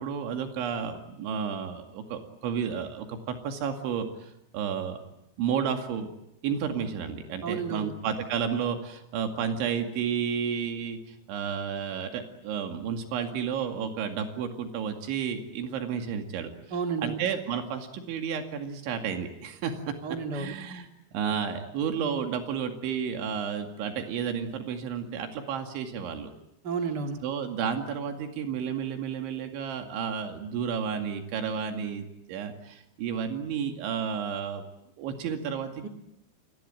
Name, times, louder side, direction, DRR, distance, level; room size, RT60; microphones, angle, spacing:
voice 1, 0.0-5.0 5.4-6.1 6.4-11.0 11.3-26.3 27.2-34.6 35.0-35.9, right 7 dB, 90° right, 5 dB, 4.6 m, -32 dB
voice 2, 7.4-7.9 16.7-17.2 20.0-20.5 26.6-27.2 35.8-35.9, right 5 dB, 50° right, 4 dB, 1.2 m, -31 dB
28.5 x 22.5 x 8.9 m, 0.81 s
omnidirectional pair, 5.2 m